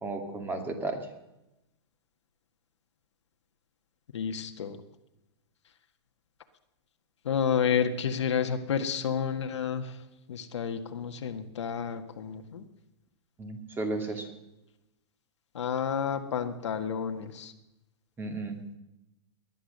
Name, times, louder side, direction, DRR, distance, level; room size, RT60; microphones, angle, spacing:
voice 1, 0.0-1.0 13.4-14.3 18.2-18.6, right 3 dB, 15° right, 6 dB, 2.2 m, -33 dB
voice 2, 4.1-4.8 7.3-10.0 10.3-12.7 15.5-17.5, left 7 dB, 85° left, 6 dB, 1.7 m, -30 dB
19.5 x 11.0 x 6.7 m, 0.93 s
hypercardioid pair, 135°, 15 cm